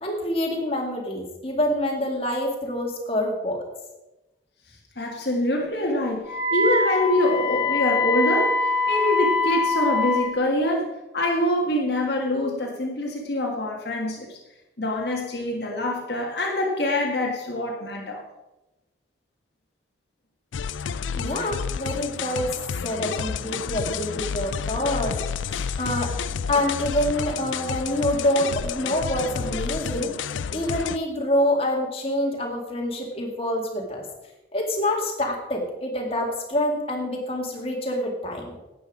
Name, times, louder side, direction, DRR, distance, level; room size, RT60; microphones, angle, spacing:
voice 1, 0.0-3.6 21.2-22.5 22.8-25.2 25.5-26.1 26.5-30.1 30.5-34.0 34.5-38.5, left 1 dB, 30° left, 0 dB, 2.2 m, -26 dB
voice 2, 5.0-8.6 8.9-14.4 14.8-18.2, left 1 dB, 60° left, -1 dB, 1.6 m, -25 dB
Wind instrument woodwind instrument, 6.3-10.3, left 3 dB, 5° right, 2.0 m, -23 dB
sound 1, 20.5-31.0, left 6 dB, 85° left, 0.4 m, -30 dB
12.0 x 9.1 x 4.9 m, 0.99 s
head